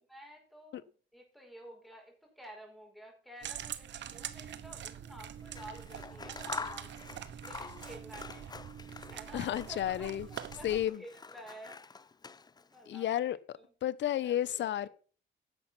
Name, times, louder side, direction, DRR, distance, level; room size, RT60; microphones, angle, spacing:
voice 1, 0.1-7.1 7.4-8.5 9.1-11.9 12.6-13.3 13.6-13.7 14.2-14.9, equal, ahead, 5.4 m, -51 dB
sound 1, 3.4-10.9, right 10 dB, 65° right, 1.0 m, -44 dB
Scissors, 5.4-9.9 10.2-12.8, left 4 dB, 20° left, 0.5 m, -46 dB
voice 2, 9.3-10.3 10.6-11.0 12.9-14.9, left 11 dB, 65° left, 0.8 m, -32 dB
11.0 x 7.1 x 5.8 m
cardioid pair, 90°, 20 cm